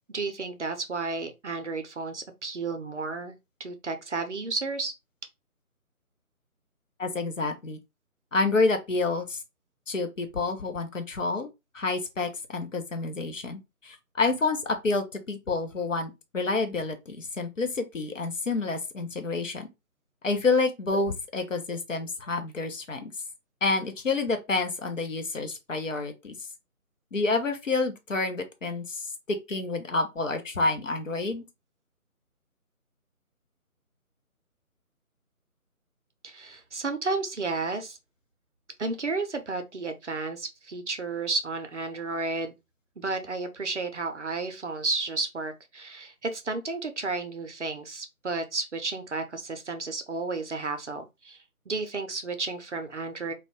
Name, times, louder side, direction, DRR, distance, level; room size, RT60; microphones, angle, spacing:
voice 1, 0.1-3.3 3.6-4.9 36.2-38.0 38.8-42.5 43.0-51.4 51.7-53.3, right 3 dB, 55° right, 0.5 m, -32 dB
voice 2, 7.0-7.8 8.3-9.4 9.9-11.5 11.7-19.7 20.2-23.1 23.6-26.3 27.1-31.4, left 3 dB, 60° left, 0.7 m, -28 dB
2.4 x 2.2 x 3.4 m
figure-of-eight pair, 155°, 44 cm